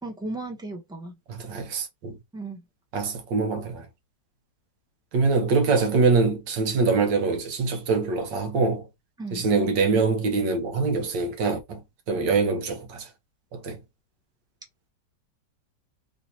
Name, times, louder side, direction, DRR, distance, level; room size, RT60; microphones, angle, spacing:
voice 1, 0.0-1.1 2.3-2.6 9.2-9.5, right 2 dB, 5° right, 0.7 m, -35 dB
voice 2, 1.3-2.2 2.9-3.9 5.1-8.9 9.3-11.8 12.1-13.1 13.5-13.8, right 4 dB, 75° right, 1.8 m, -24 dB
3.9 x 2.8 x 4.3 m
omnidirectional pair, 2.0 m